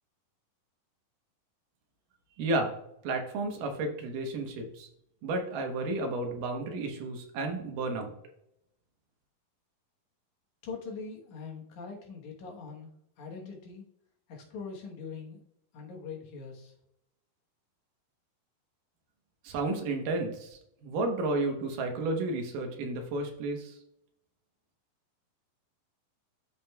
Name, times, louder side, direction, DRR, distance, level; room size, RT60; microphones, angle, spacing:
voice 1, 2.4-2.7 3.0-4.9 5.2-8.1 19.4-23.7, right 2 dB, 70° right, 3 dB, 2.5 m, -32 dB
voice 2, 10.6-12.9 13.2-13.8 14.3-15.4 15.7-16.7, left 5 dB, 65° left, 0 dB, 2.3 m, -42 dB
12.5 x 5.1 x 2.3 m, 0.79 s
omnidirectional pair, 4.2 m